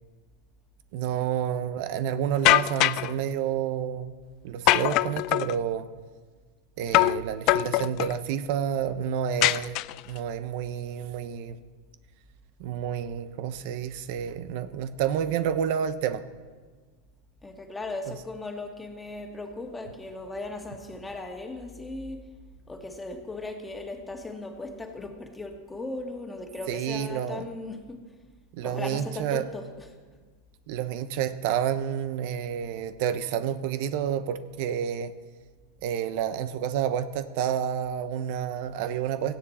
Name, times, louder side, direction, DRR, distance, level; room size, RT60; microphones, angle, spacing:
voice 1, 0.9-4.1 4.4-5.9 6.8-9.8 10.1-11.6 12.6-16.2 26.7-27.4 28.5-29.4 30.7-35.1 35.8-39.4, right 9 dB, 55° right, 0.8 m, -29 dB
sound 1, 2.4-3.1 4.7-5.6 6.9-7.2 7.5-8.2 9.4-10.2, left 18 dB, 45° left, 0.3 m, -22 dB
voice 2, 17.4-22.3 22.7-28.1 28.6-30.0, left 2 dB, 10° left, 1.7 m, -37 dB
17.0 x 16.0 x 4.3 m
supercardioid pair, 145°, 0 cm